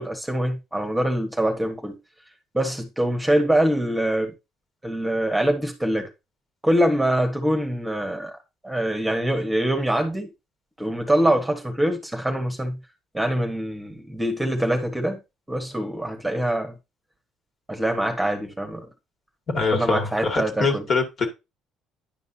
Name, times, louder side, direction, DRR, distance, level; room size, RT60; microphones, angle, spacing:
voice 1, 0.0-2.0 2.5-4.3 4.8-6.1 6.6-8.4 8.6-10.3 10.8-12.8 13.1-15.2 15.5-16.7 17.7-18.9 19.7-20.8, right 1 dB, 5° right, 1.4 m, -24 dB
voice 2, 19.5-21.3, left 4 dB, 45° left, 2.2 m, -24 dB
10.5 x 5.3 x 2.8 m
cardioid pair, 105°, 0 cm